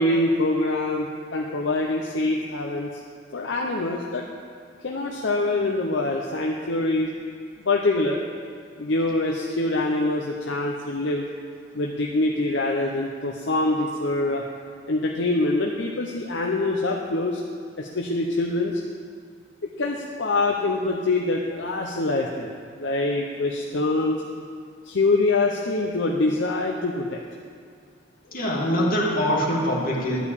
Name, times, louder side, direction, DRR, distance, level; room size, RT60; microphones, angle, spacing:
voice 1, 0.0-2.9 3.3-4.2 4.8-7.1 7.6-8.2 8.8-11.2 11.7-14.4 14.9-17.4 17.8-18.8 19.8-22.5 22.8-24.2 24.8-27.2, left 2 dB, 70° left, 0 dB, 0.8 m, -24 dB
voice 2, 28.3-30.2, equal, 50° left, -4 dB, 2.3 m, -23 dB
12.0 x 5.2 x 8.4 m, 2.2 s
head